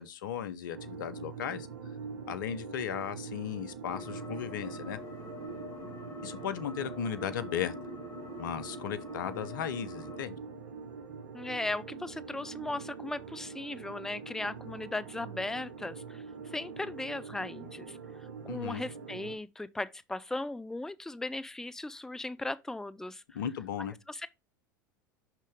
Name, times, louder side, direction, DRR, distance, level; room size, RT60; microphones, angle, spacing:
voice 1, 0.0-1.7 2.3-5.0 6.2-7.7 8.4-10.4 18.5-18.8 23.3-23.9, left 9 dB, 75° left, 0.8 m, -36 dB
sound 1, 0.7-19.4, right 5 dB, 75° right, 1.5 m, -44 dB
sound 2, 3.8-10.2, left 2 dB, 30° left, 3.9 m, -46 dB
voice 2, 11.3-18.0 18.4-23.2 24.1-24.3, left 2 dB, 5° left, 0.5 m, -37 dB
5.9 x 5.7 x 3.5 m
hypercardioid pair, 85°, 11 cm